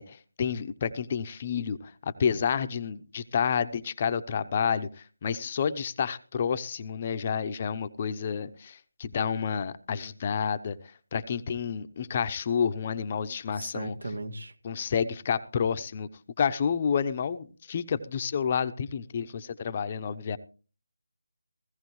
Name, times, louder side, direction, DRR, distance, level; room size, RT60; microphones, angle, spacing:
voice 1, 0.0-10.8 11.1-14.0 14.6-16.1 16.4-20.4, left 7 dB, 30° left, 12 dB, 0.8 m, -29 dB
voice 2, 13.6-14.5, right 2 dB, 70° right, 9 dB, 2.1 m, -37 dB
16.5 x 16.0 x 3.2 m, 0.36 s
figure-of-eight pair, 165°, 0 cm